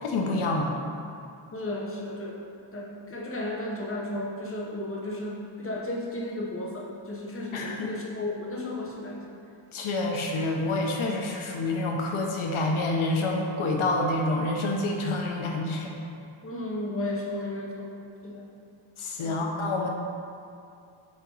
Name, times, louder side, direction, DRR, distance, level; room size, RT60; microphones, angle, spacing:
voice 1, 0.0-0.7 7.5-7.9 9.7-16.0 19.0-19.9, left 2 dB, 85° left, 1 dB, 0.8 m, -28 dB
voice 2, 1.5-9.3 16.4-17.9 18.2-18.5 19.2-19.5, left 1 dB, 25° left, -3 dB, 0.9 m, -34 dB
7.5 x 2.9 x 4.7 m, 2.5 s
wide cardioid pair, 120°, 48 cm